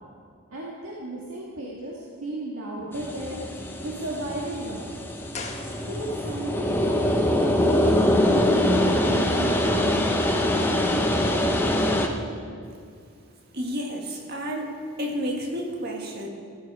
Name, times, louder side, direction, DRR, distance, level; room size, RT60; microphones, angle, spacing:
voice 1, 0.5-3.4 3.8-4.8 5.9-10.2, right 1 dB, 75° right, -5 dB, 2.0 m, -34 dB
sound 1, 2.9-12.1, left 1 dB, 10° left, 0.8 m, -23 dB
sound 2, 5.3-6.4 6.6-6.7, left 3 dB, 30° left, 1.3 m, -39 dB
voice 2, 13.5-16.3, equal, 45° right, 2 dB, 1.8 m, -31 dB
14.5 x 13.5 x 4.9 m, 2.2 s
head